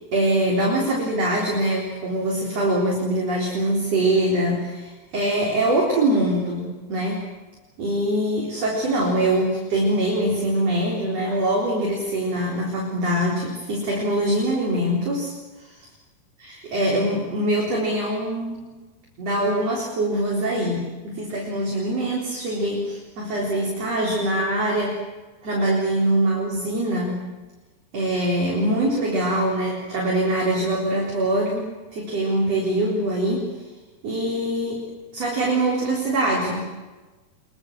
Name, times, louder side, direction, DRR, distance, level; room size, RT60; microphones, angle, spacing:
voice 1, 0.1-7.2 7.8-15.3 16.4-18.6 19.2-25.0 25.4-27.3 27.9-33.5 34.0-36.7, right 1 dB, 40° right, -3 dB, 4.8 m, -23 dB
24.5 x 23.0 x 7.6 m, 1.2 s
omnidirectional pair, 4.6 m